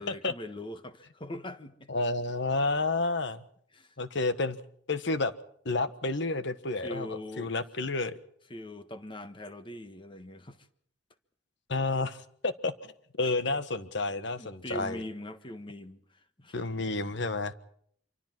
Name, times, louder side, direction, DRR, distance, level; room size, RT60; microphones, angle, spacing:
voice 1, 0.0-1.9 3.7-3.9 6.8-7.5 8.5-10.7 13.2-13.3 14.4-16.6, left 1 dB, 25° left, 1.4 m, -42 dB
voice 2, 1.9-3.4 4.0-4.6 4.9-5.3 5.6-8.2 11.7-12.9 13.2-15.0 16.5-17.5, left 3 dB, 70° left, 1.4 m, -30 dB
26.0 x 24.5 x 4.6 m
head